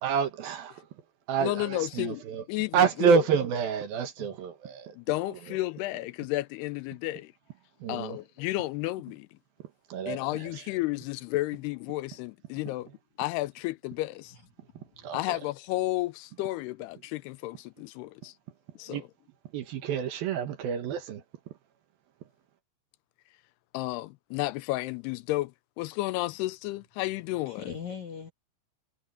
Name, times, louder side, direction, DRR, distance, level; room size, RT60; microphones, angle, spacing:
voice 1, 0.0-0.9 1.3-2.4 2.7-5.0 5.5-5.6 7.8-8.2 9.9-10.6 15.0-15.4 18.9-19.1 19.5-21.2, right 7 dB, 65° right, 2.8 m, -28 dB
voice 2, 1.4-2.2 2.5-3.2 5.0-7.3 7.9-9.3 10.1-12.9 13.2-14.3 15.1-18.3 18.8-19.0 23.7-25.5 25.8-27.7, left 18 dB, 80° left, 2.4 m, -32 dB
voice 3, 14.7-15.1 27.4-28.3, left 7 dB, 50° left, 3.1 m, -41 dB
omnidirectional pair, 5.0 m